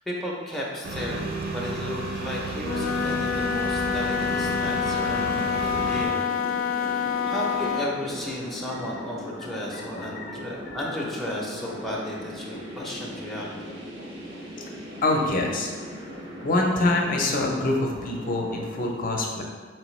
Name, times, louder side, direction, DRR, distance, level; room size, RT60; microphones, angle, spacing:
voice 1, 0.1-13.7, left 1 dB, ahead, -5 dB, 0.5 m, -34 dB
sound 1, 0.8-6.1, right 2 dB, 50° right, 0.5 m, -32 dB
Wind instrument woodwind instrument, 2.6-8.0, left 6 dB, 85° left, 0.3 m, -27 dB
sound 2, 3.8-18.8, equal, 75° right, 0.9 m, -40 dB
voice 2, 15.0-15.7 16.4-19.4, left 2 dB, 45° left, 1 dB, 0.6 m, -25 dB
4.3 x 3.2 x 3.0 m, 1.5 s
head